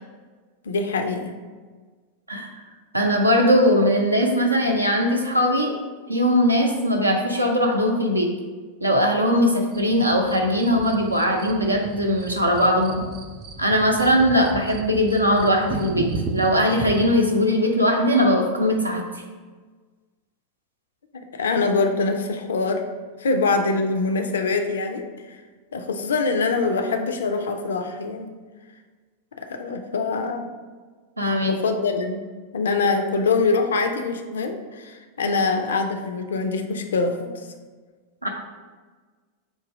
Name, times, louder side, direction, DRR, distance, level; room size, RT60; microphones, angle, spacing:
voice 1, 0.7-1.3 21.3-22.8 23.2-25.4 25.7-28.3 29.3-30.5 31.4-32.2 32.5-37.4, left 4 dB, 65° left, 6 dB, 0.4 m, -24 dB
voice 2, 2.9-5.7 6.1-8.3 8.8-13.0 13.6-16.1 16.3-19.0 31.2-31.5 38.2-38.3, equal, 85° right, 2 dB, 0.6 m, -20 dB
sound 1, 9.7-17.2, right 3 dB, 35° right, 0.4 m, -35 dB
3.9 x 2.7 x 4.8 m, 1.4 s
figure-of-eight pair, 90°, 0 cm